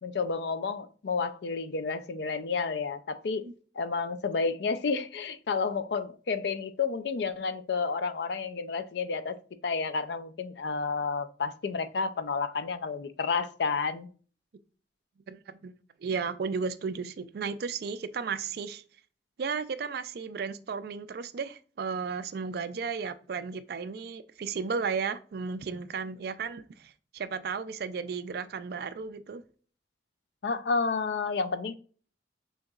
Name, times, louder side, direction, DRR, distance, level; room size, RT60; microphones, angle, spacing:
voice 1, 0.0-3.5 3.8-9.4 9.6-14.1 30.4-31.7, left 4 dB, 65° left, 0.4 m, -30 dB
voice 2, 15.3-15.7 16.0-18.8 19.4-29.4, right 5 dB, 60° right, 0.4 m, -34 dB
6.3 x 2.9 x 2.3 m
head